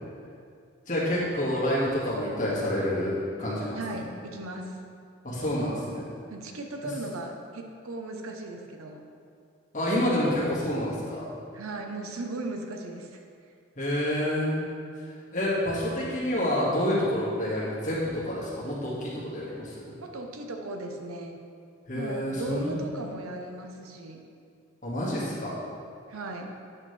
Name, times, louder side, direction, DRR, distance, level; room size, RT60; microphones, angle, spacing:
voice 1, 0.9-4.0 5.2-6.1 6.8-6.9 9.7-11.3 13.8-14.6 15.0-19.9 21.9-22.8 24.8-25.6, left 1 dB, 35° left, -8 dB, 1.9 m, -28 dB
voice 2, 3.7-4.8 6.3-9.0 11.5-13.2 20.0-21.3 21.9-24.2 26.1-26.5, right 2 dB, 80° right, 3 dB, 0.7 m, -37 dB
8.7 x 6.3 x 3.3 m, 2.3 s
head